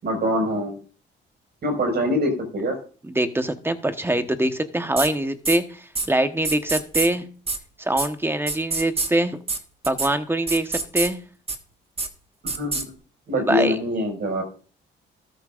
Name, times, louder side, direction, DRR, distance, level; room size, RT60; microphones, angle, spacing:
voice 1, 0.0-0.8 1.6-2.8 12.4-12.8 13.3-14.4, equal, 55° right, 3 dB, 5.6 m, -24 dB
voice 2, 3.0-7.3 7.8-9.4 9.9-11.2 13.4-13.8, right 1 dB, 10° right, 8 dB, 1.2 m, -23 dB
sound 1, 5.0-5.1 5.4-5.6 5.9-6.1 6.4-7.1 7.5-7.6 8.0-8.1 8.5-9.1 9.5-9.6 9.8-10.1 10.5-11.1 11.5-11.6 12.0-12.1 12.5-12.8, right 3 dB, 30° right, 1.6 m, -25 dB
13.5 x 12.0 x 2.6 m, 0.41 s
cardioid pair, 90°, 20 cm